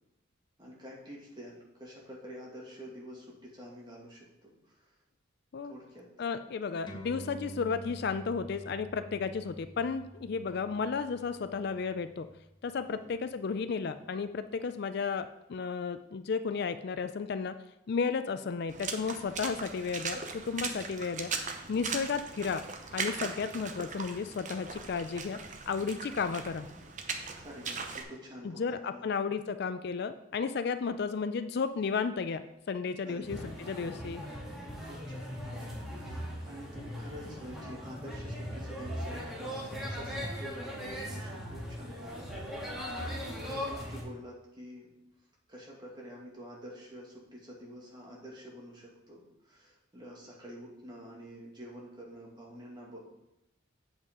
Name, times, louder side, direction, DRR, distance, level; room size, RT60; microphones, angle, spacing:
voice 1, 0.6-4.9 5.6-6.1 6.5-6.6 7.3-7.4 12.9-13.1 27.4-29.1 33.0-33.4 34.8-44.9 45.5-53.1, equal, 20° right, -3 dB, 2.1 m, -48 dB
voice 2, 6.2-12.3 12.6-17.5 17.9-21.3 21.7-22.6 22.9-25.4 25.7-26.7 28.4-34.2, left 5 dB, 50° left, 11 dB, 0.4 m, -33 dB
sound 1, 6.9-13.7, right 1 dB, 20° left, 1.1 m, -49 dB
Water / Splash splatter, 18.7-28.0, right 5 dB, 35° right, 0.8 m, -39 dB
sound 2, 33.2-44.0, equal, ahead, 1.9 m, -39 dB
8.1 x 8.0 x 3.7 m, 0.90 s
head